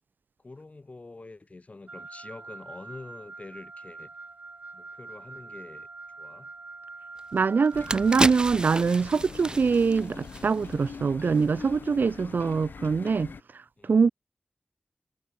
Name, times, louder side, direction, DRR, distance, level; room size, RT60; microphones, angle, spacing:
voice 1, 0.4-4.1 4.7-5.9 6.2-6.5 13.8-14.0, left 3 dB, 45° left, 2.9 m, -46 dB
Wind instrument woodwind instrument, 1.9-8.3, right 3 dB, 55° right, 2.5 m, -44 dB
sound 1, 7.2-7.3 7.7-10.9 11.2-11.4, right 2 dB, 25° right, 1.3 m, -32 dB
voice 2, 7.3-13.3 13.8-14.1, right 5 dB, 75° right, 0.5 m, -24 dB
sound 2, 7.7-13.4, left 5 dB, 90° left, 0.7 m, -43 dB
wide cardioid pair, 65°, 3 cm